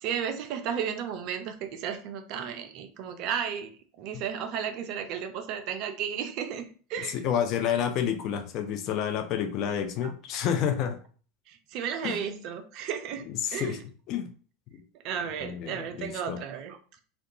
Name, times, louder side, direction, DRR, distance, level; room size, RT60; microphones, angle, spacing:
voice 1, 0.0-3.7 4.0-7.2 10.0-10.1 11.5-13.2 13.5-13.8 15.0-16.8, right 8 dB, 45° right, 7 dB, 0.4 m, -33 dB
voice 2, 7.0-11.0 12.0-12.2 13.4-13.8 14.1-14.3 14.7-14.8 15.4-16.4, left 8 dB, 45° left, 6 dB, 0.4 m, -29 dB
2.2 x 2.2 x 2.7 m, 0.41 s
figure-of-eight pair, 80°, 0 cm